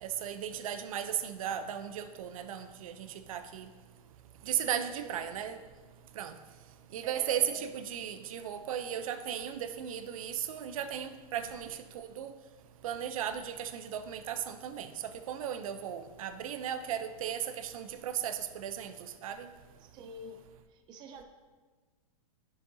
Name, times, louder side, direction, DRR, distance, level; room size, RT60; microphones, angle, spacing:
voice 1, 0.0-3.7 4.5-5.6 6.2-6.3 6.9-11.7 11.9-12.3 12.8-14.9 15.3-18.9 19.2-19.5, right 9 dB, 65° right, 10 dB, 0.6 m, -36 dB
voice 2, 4.5-5.1 7.0-7.7 11.3-11.4 19.8-20.4 20.7-21.2, right 3 dB, 25° right, 5 dB, 0.5 m, -47 dB
9.8 x 6.4 x 2.7 m, 1.4 s
hypercardioid pair, 145°, 19 cm